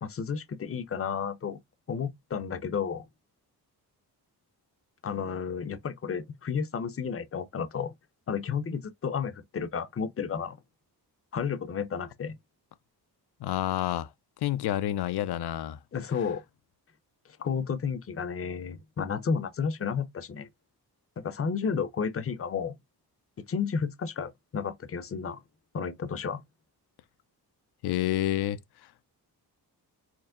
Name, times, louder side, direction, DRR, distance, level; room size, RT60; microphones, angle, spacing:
voice 1, 0.0-1.6 1.9-3.1 5.0-7.9 8.3-10.6 11.3-12.4 15.9-16.4 17.4-20.5 21.2-22.8 23.5-25.4 25.7-26.4, left 6 dB, 35° left, 0.6 m, -32 dB
voice 2, 13.4-14.1 14.4-15.8 27.8-28.6, left 13 dB, 75° left, 0.5 m, -28 dB
4.5 x 2.0 x 3.6 m
cardioid pair, 75°, 39 cm